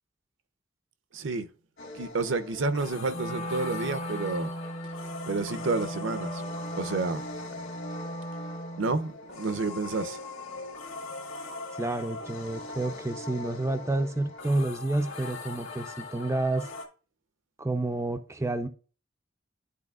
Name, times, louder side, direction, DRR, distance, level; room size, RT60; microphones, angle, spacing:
voice 1, 1.1-1.5 1.9-4.5 5.3-6.4 6.8-7.2 8.8-10.2, right 3 dB, 60° right, 0.6 m, -30 dB
sound 1, 1.8-16.9, left 3 dB, 65° left, 1.8 m, -41 dB
Wind instrument woodwind instrument, 3.1-9.1, equal, 35° left, 0.8 m, -37 dB
voice 2, 11.7-16.7 17.6-18.7, right 2 dB, 15° right, 0.4 m, -29 dB
12.0 x 4.2 x 2.3 m
head